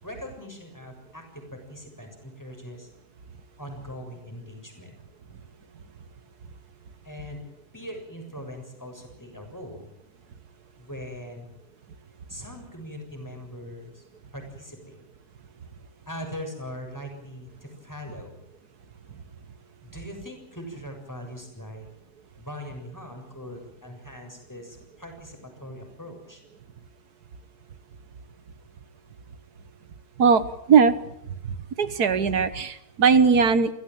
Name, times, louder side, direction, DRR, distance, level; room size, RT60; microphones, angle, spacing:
voice 1, 0.0-2.9 3.6-5.0 5.3-5.4 7.0-7.4 7.7-9.9 10.8-11.5 12.3-14.0 14.3-15.0 16.1-18.4 19.8-21.9 22.4-26.4, equal, 10° left, 4 dB, 7.0 m, -40 dB
voice 2, 30.2-30.9 31.8-33.7, right 6 dB, 65° right, 13 dB, 1.8 m, -19 dB
29.5 x 16.5 x 9.2 m, 0.80 s
omnidirectional pair, 1.8 m